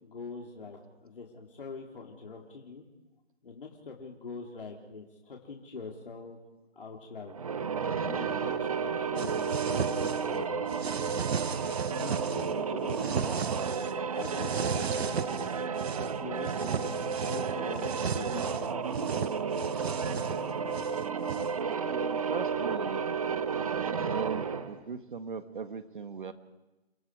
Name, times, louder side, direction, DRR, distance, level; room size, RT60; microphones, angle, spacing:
voice 1, 0.0-2.8 3.4-6.4 6.7-7.4 8.0-10.8 11.6-13.5 14.0-15.6 16.0-19.2, left 4 dB, 55° left, 0 dB, 3.5 m, -44 dB
sound 1, 7.3-24.8, right 6 dB, 35° right, 1.5 m, -32 dB
sound 2, 9.2-10.4 10.7-12.5 12.9-13.9 14.2-16.1 16.5-21.6, right 6 dB, 70° right, 0.8 m, -35 dB
voice 2, 21.4-23.0 23.9-26.3, right 5 dB, 50° right, 9 dB, 1.7 m, -39 dB
30.0 x 28.0 x 4.8 m, 1.0 s
hypercardioid pair, 170°, 33 cm